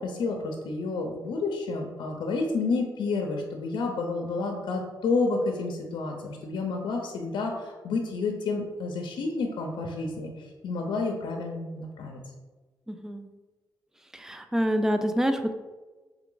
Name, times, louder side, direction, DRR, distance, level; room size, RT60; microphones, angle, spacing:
voice 1, 0.0-12.2, left 3 dB, 75° left, 3 dB, 0.6 m, -30 dB
voice 2, 12.9-13.3 14.1-15.5, equal, 5° right, 7 dB, 0.4 m, -27 dB
3.5 x 3.3 x 3.8 m, 1.3 s
cardioid pair, 90°, 8 cm